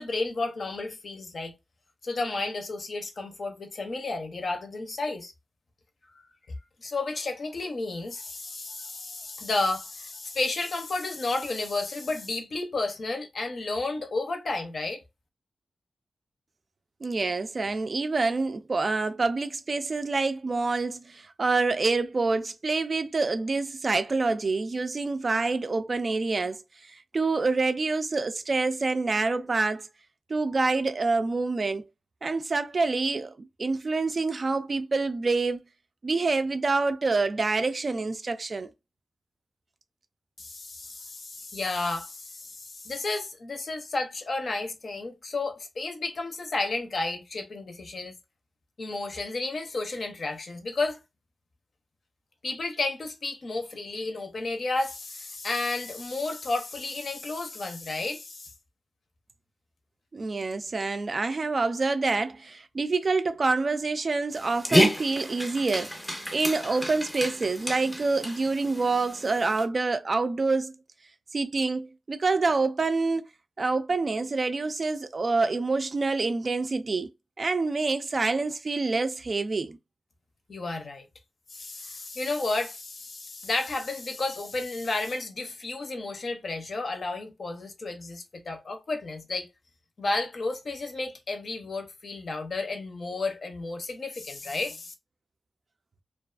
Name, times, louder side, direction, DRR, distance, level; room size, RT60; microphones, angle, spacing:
voice 1, 0.0-1.5 2.0-5.3 6.8-15.0 40.4-48.2 48.8-51.0 52.4-58.5 80.5-81.1 81.5-89.5 90.0-94.9, left 3 dB, 55° left, 0.6 m, -32 dB
voice 2, 17.0-29.9 30.3-31.8 32.2-35.6 36.0-38.7 60.1-65.9 66.3-70.7 71.3-73.2 73.6-77.1 77.4-79.8, right 3 dB, 45° right, 0.3 m, -27 dB
Dog, 64.3-69.7, equal, 5° left, 0.6 m, -29 dB
2.3 x 2.3 x 2.3 m
wide cardioid pair, 105°, 0 cm